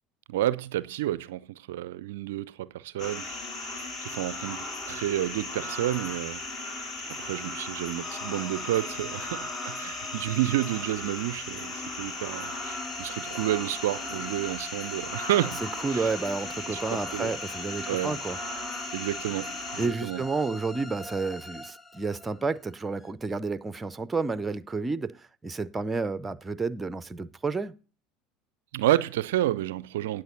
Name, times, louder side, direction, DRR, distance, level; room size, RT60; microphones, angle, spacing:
voice 1, 0.3-3.4 3.6-6.4 7.2-15.6 15.9-16.1 16.7-17.3 17.9-18.1 18.9-20.2 28.7-30.2, right 14 dB, 65° right, 0.4 m, -30 dB
sound 1, 3.0-19.9, left 2 dB, 40° left, 2.7 m, -37 dB
sound 2, 8.0-23.1, left 1 dB, 10° left, 0.9 m, -43 dB
voice 2, 15.6-18.7 19.8-27.7, right 4 dB, 15° right, 0.5 m, -31 dB
18.5 x 6.3 x 2.7 m
figure-of-eight pair, 70°, 0 cm